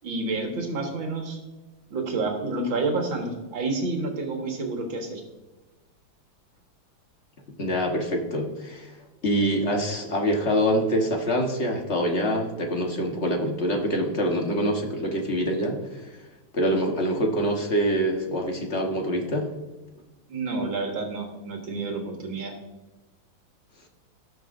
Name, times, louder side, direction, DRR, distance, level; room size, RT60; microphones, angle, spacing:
voice 1, 0.0-1.4 1.9-5.2 20.3-22.6, right 3 dB, 70° right, 2 dB, 2.2 m, -29 dB
voice 2, 7.6-8.9 9.2-16.2 16.5-19.5, equal, 40° left, 2 dB, 1.3 m, -25 dB
18.5 x 6.2 x 2.5 m, 1.1 s
omnidirectional pair, 2.2 m